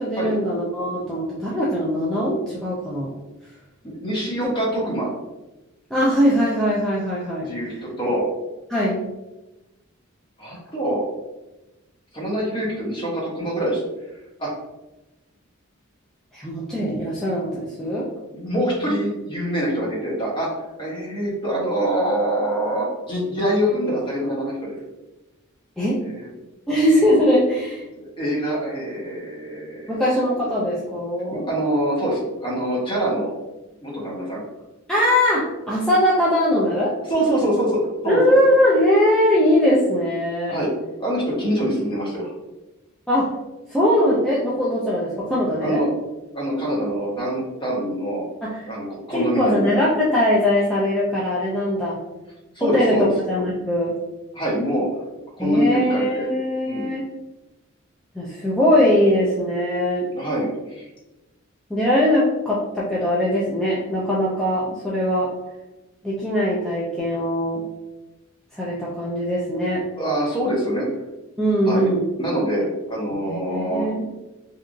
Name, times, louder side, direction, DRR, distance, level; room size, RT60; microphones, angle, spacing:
voice 1, 0.0-3.1 5.9-7.5 8.7-9.1 16.3-18.1 25.8-26.0 26.7-27.9 29.9-31.5 34.9-36.9 38.1-40.6 43.1-43.3 43.7-45.8 48.4-48.7 49.1-52.0 52.6-53.9 55.4-57.0 58.1-60.1 61.7-65.3 66.0-67.6 68.5-69.8 71.4-72.1 73.1-74.0, equal, 5° left, -8 dB, 0.4 m, -21 dB
voice 2, 3.8-5.1 7.5-8.2 10.4-11.0 12.1-13.8 14.4-14.5 18.3-20.5 20.8-24.7 26.2-26.3 27.9-30.0 31.3-33.3 33.8-34.4 37.1-38.3 40.5-40.7 41.0-42.3 45.6-45.9 46.3-48.2 48.7-49.7 52.5-53.1 54.3-54.9 55.4-56.3 56.7-56.9 60.1-60.9 70.0-70.9 71.7-71.9 72.2-73.9, right 1 dB, 25° left, -4 dB, 0.9 m, -24 dB
2.9 x 2.4 x 2.5 m, 1.0 s
head